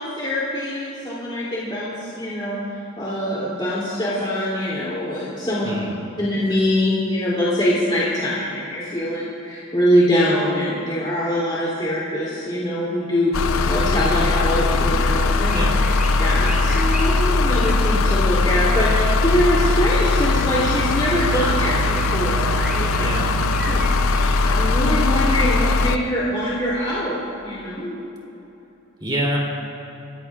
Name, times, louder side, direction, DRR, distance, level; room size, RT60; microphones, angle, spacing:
voice 1, 0.0-2.6 3.0-5.6 6.2-15.6 16.2-23.0 23.7-23.8 24.1-28.0, equal, 25° left, -8 dB, 3.0 m, -23 dB
voice 2, 5.6-6.0 15.5-15.8 23.0-23.3 29.0-29.4, right 1 dB, 25° right, -3 dB, 3.2 m, -25 dB
sound 1, 13.3-26.0, left 3 dB, 80° left, 0.6 m, -20 dB
sound 2, 13.6-25.0, equal, 5° right, 2.8 m, -36 dB
26.5 x 16.5 x 2.4 m, 2.9 s
head